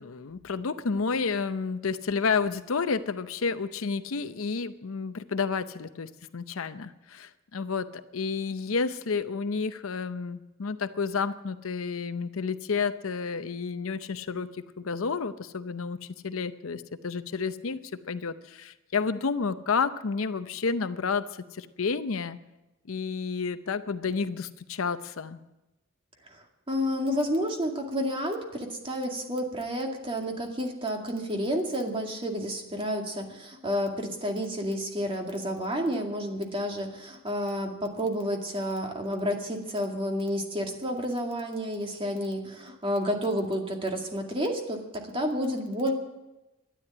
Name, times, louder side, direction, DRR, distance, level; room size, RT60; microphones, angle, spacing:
voice 1, 0.0-16.0 16.2-17.8 18.1-22.4 22.9-25.4, left 5 dB, 70° left, 12 dB, 0.7 m, -30 dB
voice 2, 26.3-45.9, equal, 25° right, 2 dB, 2.2 m, -30 dB
12.5 x 10.5 x 10.0 m, 1.0 s
head